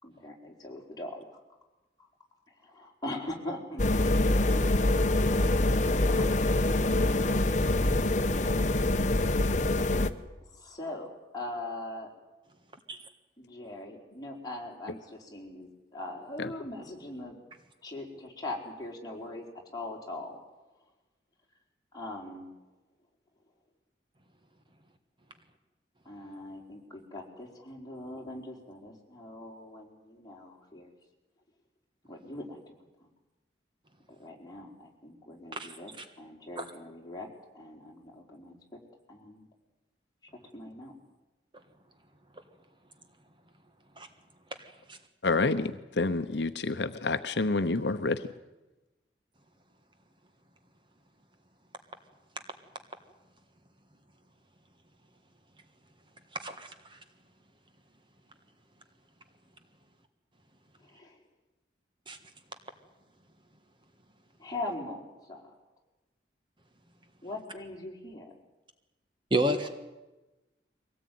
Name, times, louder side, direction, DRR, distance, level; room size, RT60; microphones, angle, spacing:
voice 1, 0.0-1.4 2.0-2.1 2.6-4.4 5.3-6.3 10.5-12.1 13.4-17.4 17.8-19.5 19.7-20.4 21.9-22.5 26.0-30.9 32.1-32.7 34.1-35.9 36.2-37.3 37.5-38.6 39.1-39.5 40.5-40.9 60.8-61.2 64.4-65.5 67.2-68.4, left 2 dB, 20° left, 4.4 m, -41 dB
sound 1, 3.8-10.1, left 2 dB, 40° left, 1.0 m, -25 dB
voice 2, 35.5-36.0 44.0-44.1 44.9-45.0 56.4-57.0 62.1-62.2 69.3-69.7, right 1 dB, 25° right, 1.5 m, -31 dB
voice 3, 45.2-48.2, left 3 dB, 70° left, 0.9 m, -28 dB
23.5 x 18.0 x 9.4 m
head